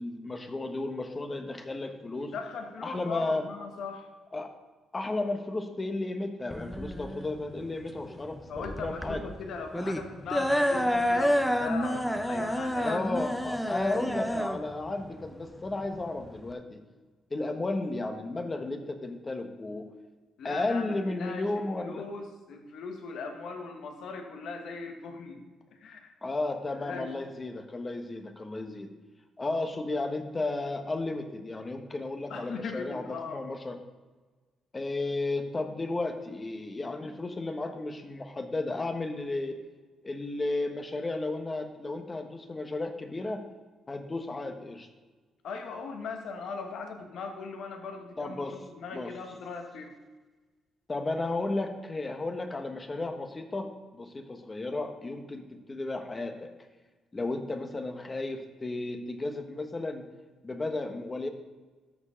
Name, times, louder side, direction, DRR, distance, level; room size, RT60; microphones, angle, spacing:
voice 1, 0.0-2.3 2.8-3.5 4.3-4.5 4.9-8.4 8.6-9.2 12.8-16.8 17.3-19.9 20.4-22.0 26.2-28.9 29.4-33.8 34.7-39.6 40.0-43.4 43.9-44.9 48.2-48.6 48.9-49.1 50.9-56.5 57.1-60.1 60.4-61.3, left 2 dB, 25° left, 6 dB, 1.1 m, -33 dB
voice 2, 2.2-4.1 8.5-13.0 20.4-25.4 25.7-26.1 26.7-27.1 32.3-33.4 45.4-48.4 48.7-49.9, left 4 dB, 70° left, 4 dB, 1.3 m, -39 dB
sound 1, 6.5-16.5, equal, 5° left, 0.7 m, -29 dB
13.0 x 4.6 x 5.1 m, 1.3 s
cardioid pair, 90°, 0 cm